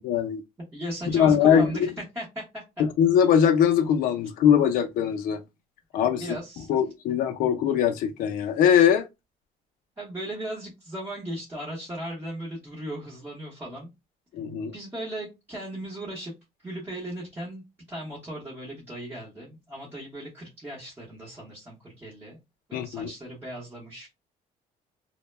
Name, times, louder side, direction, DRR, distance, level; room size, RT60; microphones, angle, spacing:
voice 1, 0.1-0.4 1.1-1.7 2.8-5.4 5.9-6.2 6.7-9.0 14.3-14.7 22.7-23.1, left 8 dB, 65° left, 0.4 m, -21 dB
voice 2, 0.7-2.6 6.0-6.8 10.0-13.9 14.7-16.3 16.6-17.6 17.9-22.4 22.7-24.1, right 1 dB, 15° right, 0.8 m, -37 dB
2.1 x 2.1 x 3.1 m
cardioid pair, 160°, 15 cm